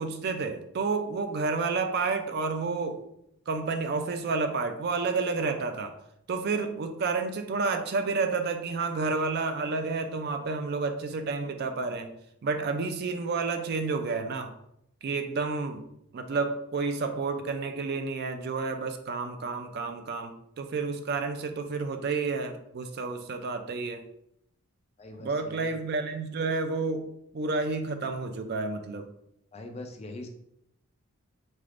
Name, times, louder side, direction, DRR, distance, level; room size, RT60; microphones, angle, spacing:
voice 1, 0.0-3.0 3.5-5.9 6.3-12.1 12.4-14.5 15.0-15.9 16.1-24.0 25.2-27.1 27.3-29.1, right 4 dB, 50° right, 6 dB, 0.3 m, -30 dB
voice 2, 25.0-25.7 29.5-30.3, left 2 dB, 30° left, 4 dB, 0.4 m, -42 dB
4.0 x 3.3 x 2.4 m, 0.77 s
head